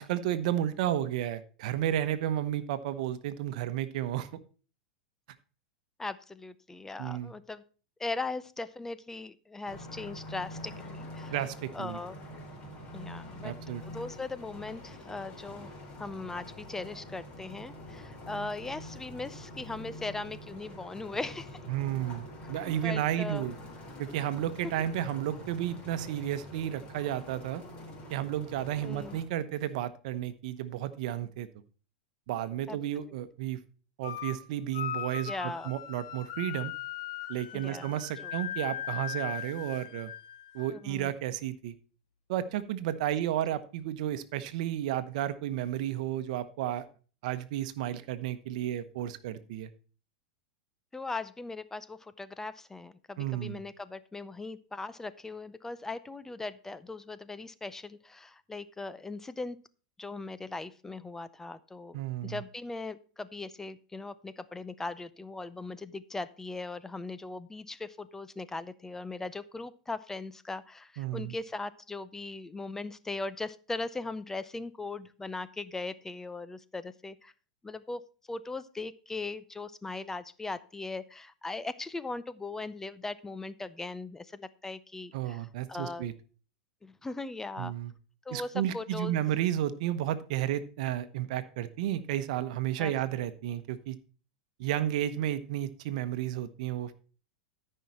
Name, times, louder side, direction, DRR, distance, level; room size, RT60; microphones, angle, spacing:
voice 1, 0.0-4.3 7.0-7.3 11.3-12.0 13.4-13.8 21.7-23.6 24.0-27.6 28.1-31.5 32.3-33.6 34.0-36.7 37.3-40.1 40.5-41.7 42.3-46.9 47.2-49.7 53.2-53.6 61.9-62.4 71.0-71.4 85.1-86.1 87.6-87.9 88.3-94.0 94.6-96.9, right 12 dB, 65° right, 13 dB, 1.0 m, -32 dB
voice 2, 6.0-7.6 8.0-11.3 11.7-12.2 12.9-13.5 13.8-15.7 16.0-21.6 22.4-22.5 22.8-23.4 28.8-29.2 32.7-32.8 35.3-35.7 37.5-37.9 38.2-38.3 40.7-41.1 50.9-59.6 60.0-77.3 77.6-86.1 86.8-87.7 88.3-89.2 92.8-92.9, left 3 dB, 10° left, 15 dB, 0.5 m, -39 dB
Grasmaaier Desteldonkdorp, 9.7-29.2, left 1 dB, 25° left, 3.8 m, -45 dB
sound 1, 34.0-34.4 34.7-40.8, left 10 dB, 65° left, 1.5 m, -39 dB
13.5 x 5.6 x 4.3 m, 0.38 s
hypercardioid pair, 120°, 4 cm